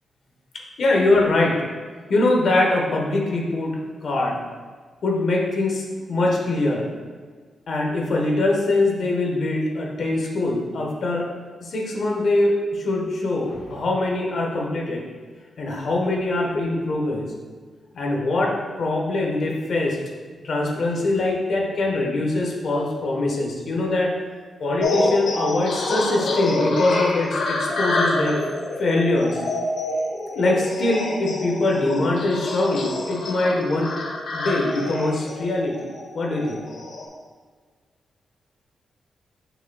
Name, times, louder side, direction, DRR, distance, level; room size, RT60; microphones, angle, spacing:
voice 1, 0.8-1.6 2.1-4.4 5.0-6.9 7.7-11.3 11.6-15.0 15.6-17.3 17.9-20.0 20.4-24.1 24.6-28.4 28.8-29.4 30.3-33.9 34.3-36.6, left 2 dB, 60° left, -1 dB, 1.2 m, -23 dB
sound 1, 24.8-37.1, left 2 dB, 75° left, 1.0 m, -27 dB
7.0 x 5.8 x 2.3 m, 1.6 s
wide cardioid pair, 130°, 0 cm